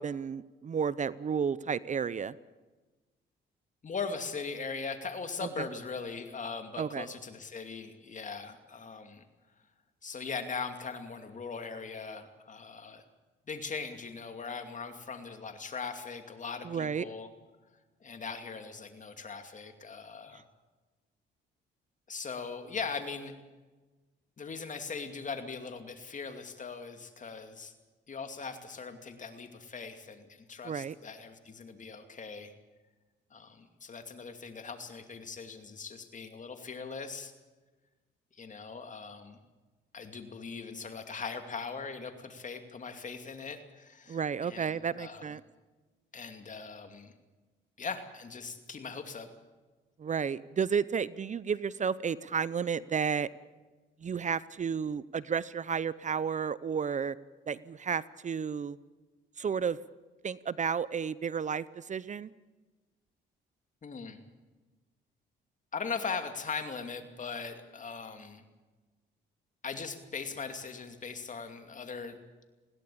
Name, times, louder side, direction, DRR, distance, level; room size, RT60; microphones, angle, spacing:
voice 1, 0.0-2.3 5.4-5.7 6.8-7.1 16.6-17.0 30.6-30.9 44.1-45.4 50.0-53.3 54.0-57.2 57.5-58.8 59.4-59.8 60.2-62.3, right 6 dB, 40° right, 19 dB, 0.6 m, -32 dB
voice 2, 3.8-9.2 10.0-13.0 13.5-17.3 18.0-20.4 22.1-23.3 24.4-27.7 28.1-32.5 33.3-37.3 38.3-39.4 39.9-45.2 46.1-47.1 47.8-49.3 63.8-64.2 65.7-68.4 69.6-72.2, left 5 dB, 40° left, 7 dB, 2.6 m, -40 dB
20.5 x 17.0 x 8.6 m, 1.2 s
cardioid pair, 90°, 20 cm